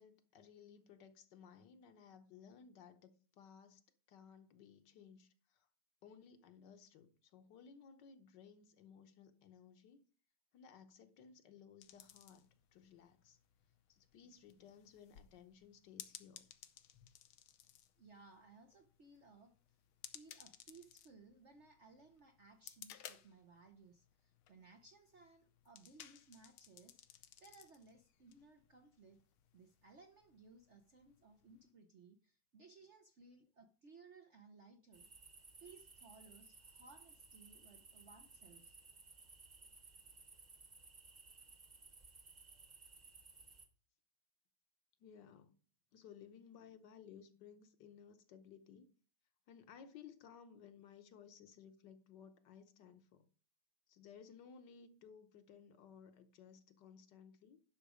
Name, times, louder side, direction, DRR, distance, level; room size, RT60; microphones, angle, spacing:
voice 1, 0.0-3.8 4.1-5.7 6.0-10.1 10.5-13.4 13.9-16.5 45.0-45.6 45.9-48.9 49.5-53.3 53.9-57.6, left 7 dB, 60° left, 1.4 m, -59 dB
sound 1, 11.8-31.7, left 10 dB, 80° left, 1.6 m, -60 dB
voice 2, 18.0-19.5 20.1-29.2 29.5-35.1 35.6-38.8, right 4 dB, 60° right, 0.7 m, -62 dB
sound 2, 34.9-43.7, right 3 dB, 25° right, 1.1 m, -59 dB
11.0 x 6.1 x 4.9 m
omnidirectional pair, 2.3 m